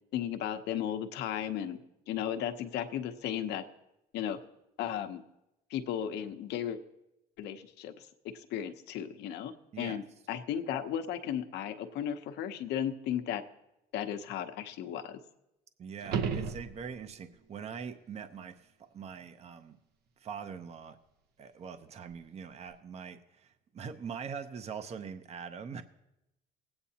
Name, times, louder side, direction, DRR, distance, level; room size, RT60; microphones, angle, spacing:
voice 1, 0.1-1.8 2.1-3.6 4.1-4.4 4.8-5.2 5.7-6.8 7.4-13.4 13.9-15.2, left 9 dB, 80° left, 7 dB, 0.8 m, -35 dB
voice 2, 15.8-19.8 20.2-21.0 21.4-25.8, right 6 dB, 40° right, 10 dB, 0.6 m, -43 dB
sound 1, 16.0-17.2 22.1-22.2, right 6 dB, 75° right, 0.9 m, -34 dB
20.0 x 8.8 x 2.8 m, 0.90 s
cardioid pair, 110°, 17 cm